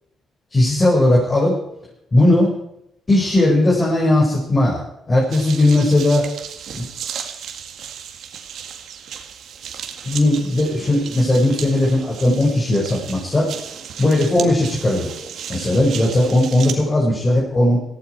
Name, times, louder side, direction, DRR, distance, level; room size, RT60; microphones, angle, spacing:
voice 1, 0.5-1.6 2.1-2.5 3.1-6.2 6.7-6.8 10.1-13.5 14.0-15.1 15.5-17.8, left 1 dB, 25° left, -4 dB, 5.8 m, -17 dB
sound 1, 5.3-16.7, right 8 dB, 70° right, 2.0 m, -34 dB
18.0 x 16.0 x 4.8 m, 0.79 s
cardioid pair, 90°, 0 cm